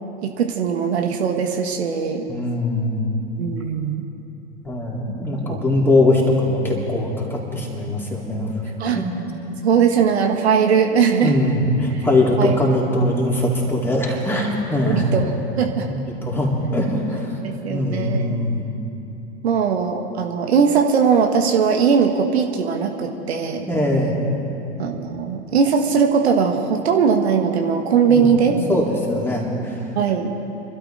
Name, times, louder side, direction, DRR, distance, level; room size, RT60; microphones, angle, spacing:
voice 1, 0.2-2.2 3.4-4.0 5.5-5.6 8.8-9.0 9.6-11.3 12.0-12.1 12.4-12.5 14.8-15.3 15.6-15.9 17.4-18.4 19.4-23.7 24.8-28.6 29.9-30.3, right 6 dB, 70° right, 3 dB, 1.5 m, -19 dB
voice 2, 2.3-3.0 4.6-8.5 9.0-9.1 11.2-15.1 15.9-17.4 17.7-18.6 23.7-24.1 28.1-29.8, left 1 dB, 5° left, -3 dB, 3.6 m, -21 dB
27.5 x 12.5 x 3.9 m, 2.9 s
figure-of-eight pair, 90°, 33 cm